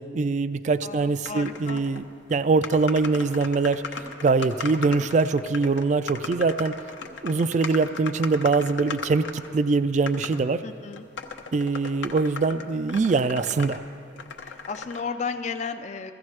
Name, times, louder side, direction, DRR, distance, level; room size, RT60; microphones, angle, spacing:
voice 1, 0.0-2.0 2.3-3.8 4.2-6.8 7.2-10.6 11.5-13.8, right 4 dB, 40° right, 13 dB, 0.3 m, -23 dB
voice 2, 0.8-1.8 10.6-11.0 14.4-16.1, left 5 dB, 40° left, 8 dB, 0.4 m, -33 dB
sound 1, 1.2-2.0 2.3-2.4 2.6-9.6 10.1-10.4 10.9-13.8 14.2-15.0, left 5 dB, 75° left, 0.8 m, -37 dB
16.0 x 14.5 x 3.2 m, 2.5 s
head